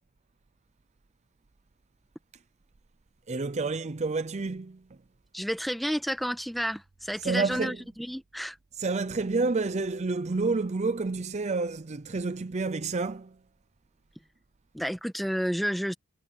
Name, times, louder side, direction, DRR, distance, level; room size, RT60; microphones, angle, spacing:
voice 1, 3.3-4.8 7.2-7.8 8.8-13.4, right 3 dB, 30° right, 0.5 m, -29 dB
voice 2, 5.3-8.6 14.7-15.9, equal, ahead, 1.2 m, -31 dB
head